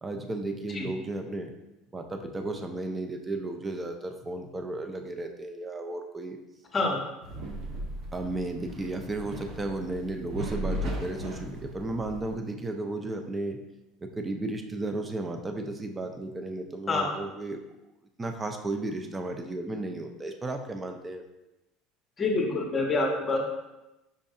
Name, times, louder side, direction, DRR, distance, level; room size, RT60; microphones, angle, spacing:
voice 1, 0.0-1.5 1.9-6.4 8.1-13.6 14.0-17.6 18.2-21.3, right 2 dB, 20° right, 5 dB, 0.4 m, -34 dB
sound 1, 7.2-12.4, equal, 60° right, 0.7 m, -37 dB
voice 2, 22.2-23.4, left 3 dB, 25° left, 1 dB, 0.8 m, -26 dB
5.2 x 2.5 x 2.4 m, 0.98 s
supercardioid pair, 105°, 0 cm